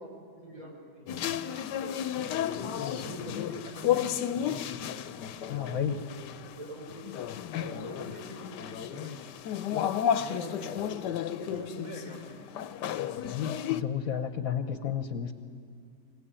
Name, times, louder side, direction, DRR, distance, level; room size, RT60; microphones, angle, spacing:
voice 1, 0.0-4.0 4.4-5.0 5.6-7.2 7.5-9.2 10.1-12.4, right 1 dB, 55° right, -2 dB, 5.3 m, -44 dB
sound 1, 1.1-13.8, left 10 dB, 85° left, 1.3 m, -33 dB
voice 2, 5.5-6.0 13.3-15.3, left 8 dB, 60° left, 9 dB, 1.2 m, -32 dB
23.5 x 16.5 x 8.9 m, 2.3 s
omnidirectional pair, 1.8 m